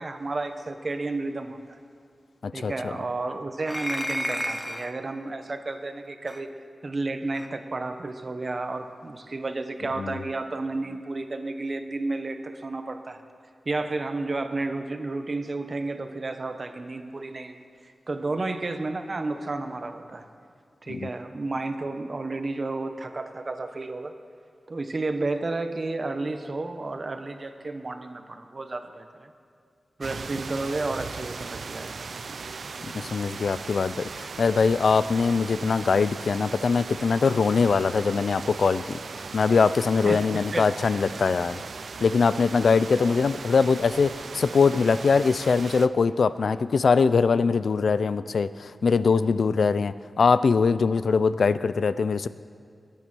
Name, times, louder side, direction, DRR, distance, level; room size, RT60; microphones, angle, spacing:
voice 1, 0.0-1.6 2.5-6.5 6.8-13.2 13.6-20.2 20.8-24.1 24.7-29.3 30.0-32.4 40.0-40.7, right 2 dB, 45° right, 7 dB, 1.0 m, -32 dB
voice 2, 2.4-2.9 10.0-10.2 20.9-21.1 32.8-41.6 42.0-52.3, left 5 dB, 80° left, 15 dB, 0.4 m, -22 dB
sound 1, 3.6-5.0 6.3-6.4 7.3-7.5, equal, 5° left, 0.6 m, -31 dB
sound 2, 30.0-45.9, right 4 dB, 75° right, 0.5 m, -38 dB
21.5 x 8.9 x 6.2 m, 2.3 s
wide cardioid pair, 125°, 0 cm